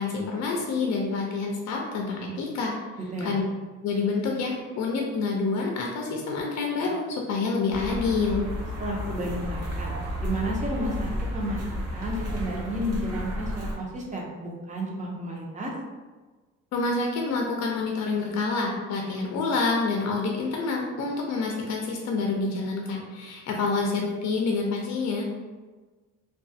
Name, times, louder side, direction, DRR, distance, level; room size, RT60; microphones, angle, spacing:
voice 1, 0.0-2.7 3.2-3.4 3.8-8.4 16.7-25.2, left 4 dB, 65° left, 0 dB, 0.5 m, -27 dB
sound 1, 7.7-13.8, equal, 55° right, 0.7 m, -32 dB
voice 2, 8.8-9.9 10.2-11.6 11.9-15.7, equal, 25° right, -2 dB, 0.7 m, -32 dB
2.3 x 2.3 x 2.6 m, 1.3 s
cardioid pair, 90°, 30 cm